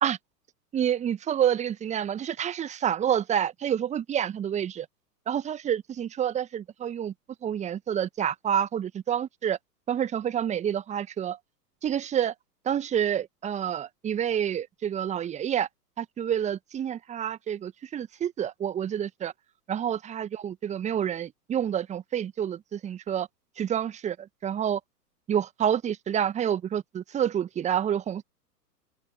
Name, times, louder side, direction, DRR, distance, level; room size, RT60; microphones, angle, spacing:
voice 1, 0.7-4.9 5.3-7.1 7.4-9.6 9.9-11.4 11.8-12.3 12.7-15.7 16.0-19.3 19.7-23.3 23.6-24.2 24.4-24.8 25.3-28.2, right 9 dB, 15° right, 1.8 m, -28 dB
open air
figure-of-eight pair, 110°, 49 cm